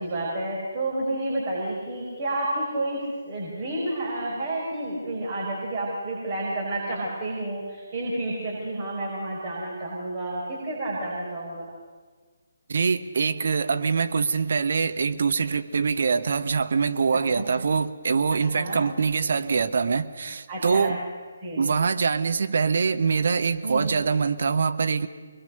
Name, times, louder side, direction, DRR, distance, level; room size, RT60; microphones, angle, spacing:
voice 1, 0.0-11.7 17.1-17.4 18.3-18.8 20.5-21.0 21.4-21.6 23.6-23.9, right 1 dB, 30° right, -5 dB, 5.8 m, -30 dB
voice 2, 12.7-21.1 21.6-25.1, right 5 dB, 55° right, 10 dB, 1.1 m, -24 dB
24.5 x 21.5 x 6.7 m, 1.5 s
figure-of-eight pair, 145°, 0 cm